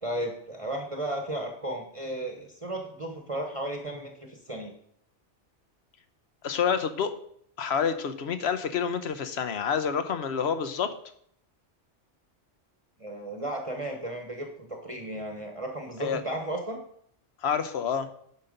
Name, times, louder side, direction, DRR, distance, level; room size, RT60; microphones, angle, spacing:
voice 1, 0.0-4.7 13.0-16.8, right 1 dB, 30° right, 2 dB, 1.1 m, -34 dB
voice 2, 6.4-7.1 7.6-10.9 16.0-16.2 17.4-18.1, left 7 dB, 65° left, 10 dB, 1.1 m, -28 dB
9.6 x 5.8 x 5.2 m, 0.67 s
omnidirectional pair, 1.2 m